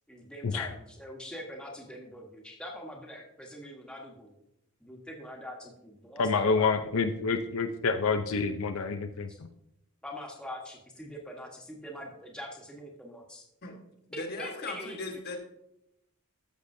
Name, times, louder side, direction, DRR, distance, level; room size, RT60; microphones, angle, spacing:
voice 1, 0.1-4.4 4.8-6.7 9.3-9.4 10.0-13.4 14.1-15.0, equal, 5° left, -1 dB, 1.2 m, -43 dB
voice 2, 6.2-9.3, left 4 dB, 70° left, 6 dB, 0.5 m, -28 dB
voice 3, 14.1-15.4, left 2 dB, 45° left, 3 dB, 1.3 m, -38 dB
13.5 x 6.6 x 2.7 m, 0.80 s
head